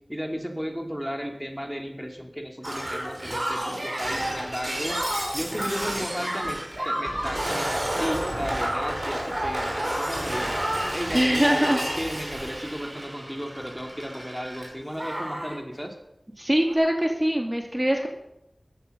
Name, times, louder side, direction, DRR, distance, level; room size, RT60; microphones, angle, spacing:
voice 1, 0.1-5.0 5.3-10.6 10.9-15.9, equal, 5° right, 3 dB, 2.6 m, -34 dB
Shatter, 2.6-14.7 15.0-15.6 16.6-16.7, right 1 dB, 40° right, 5.2 m, -30 dB
voice 2, 11.1-11.8 16.4-18.1, equal, 20° right, 2 dB, 2.4 m, -23 dB
15.5 x 11.5 x 6.7 m, 0.85 s
wide cardioid pair, 45°, 0 cm